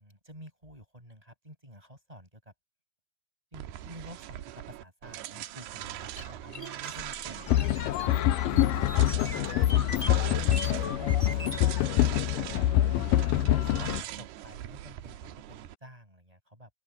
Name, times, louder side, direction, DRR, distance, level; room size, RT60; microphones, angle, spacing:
voice 1, 0.0-2.5 3.5-8.2 8.7-10.4 10.8-11.8 12.5-16.7, equal, 10° right, 7.9 m, -50 dB
sound 1, 3.5-15.8, right 13 dB, 80° right, 3.0 m, -41 dB
sound 2, 6.2-11.6, left 2 dB, 20° left, 3.2 m, -41 dB
sound 3, 7.5-14.0, left 13 dB, 80° left, 2.0 m, -25 dB
open air
omnidirectional pair, 4.7 m